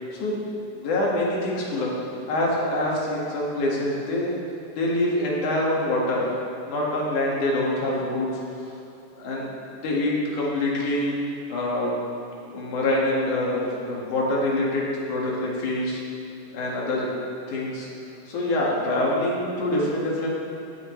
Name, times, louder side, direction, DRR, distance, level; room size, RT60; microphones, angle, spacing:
voice 1, 0.1-2.0 2.3-4.3 4.7-6.3 6.6-8.3 9.2-9.5 9.8-11.2 11.5-12.0 12.4-16.0 16.5-17.1 17.5-17.9 18.3-20.3, left 1 dB, 75° left, -4 dB, 3.3 m, -25 dB
19.5 x 7.9 x 3.3 m, 2.8 s
omnidirectional pair, 3.6 m